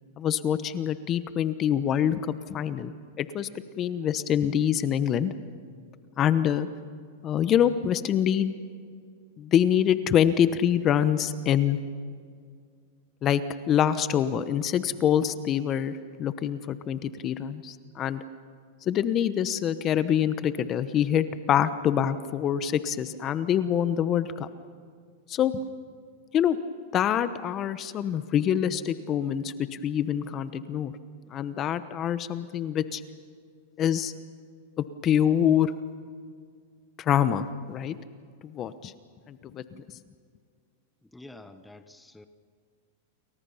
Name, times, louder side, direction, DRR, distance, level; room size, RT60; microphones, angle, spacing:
voice 1, 0.2-2.2 2.5-3.5 3.8-5.3 6.2-6.7 7.2-8.5 9.4-11.8 13.2-18.2 18.8-24.5 25.3-25.5 26.3-26.6 26.9-30.9 31.3-33.0 33.8-34.1 34.8-35.7 37.0-38.0 38.4-38.9 39.3-39.8, left 9 dB, 30° left, 13 dB, 1.0 m, -25 dB
voice 2, 41.0-42.3, left 2 dB, 5° left, 10 dB, 1.0 m, -48 dB
29.0 x 23.5 x 5.7 m, 2.1 s
hypercardioid pair, 135°, 0 cm